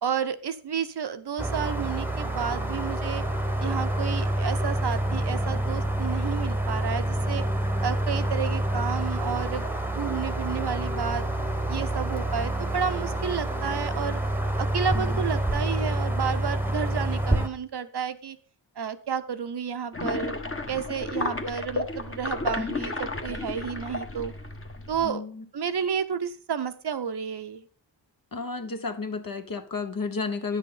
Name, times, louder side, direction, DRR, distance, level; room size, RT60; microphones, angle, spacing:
voice 1, 0.0-3.2 3.6-7.4 7.8-11.3 11.7-14.2 14.6-18.4 18.8-20.3 20.7-24.3 24.9-25.2 25.5-27.7, right 7 dB, 60° right, 0.8 m, -31 dB
sound 1, 1.4-17.5, right 1 dB, 5° right, 1.1 m, -27 dB
sound 2, 19.9-25.1, left 2 dB, 30° left, 1.3 m, -32 dB
voice 2, 25.0-25.4 28.3-30.6, left 4 dB, 50° left, 1.0 m, -32 dB
9.8 x 6.4 x 5.5 m
wide cardioid pair, 65°, 45 cm